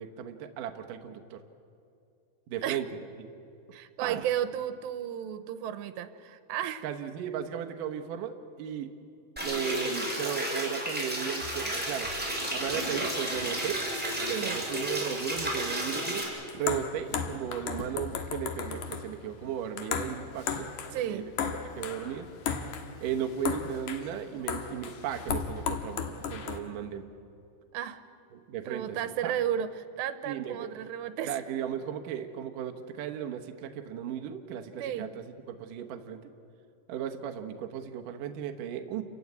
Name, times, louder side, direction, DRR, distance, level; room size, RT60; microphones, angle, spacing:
voice 1, 0.0-1.4 2.5-2.9 3.2-3.3 4.0-4.2 6.8-8.9 9.4-12.1 12.5-16.3 16.5-20.7 21.1-22.3 23.0-27.0 28.3-29.0 29.2-29.3 30.3-30.7 31.2-36.2 36.9-39.0, right 9 dB, 65° right, 5 dB, 2.3 m, -36 dB
voice 2, 3.7-6.8 14.3-14.6 20.9-21.3 27.7-28.0 28.7-31.4 34.8-35.1, right 10 dB, 90° right, 11 dB, 3.1 m, -33 dB
sound 1, 9.4-16.2, right 1 dB, ahead, 5.3 m, -32 dB
sound 2, 11.4-26.6, left 6 dB, 60° left, 2.2 m, -37 dB
29.0 x 16.0 x 9.5 m, 2.6 s
omnidirectional pair, 5.0 m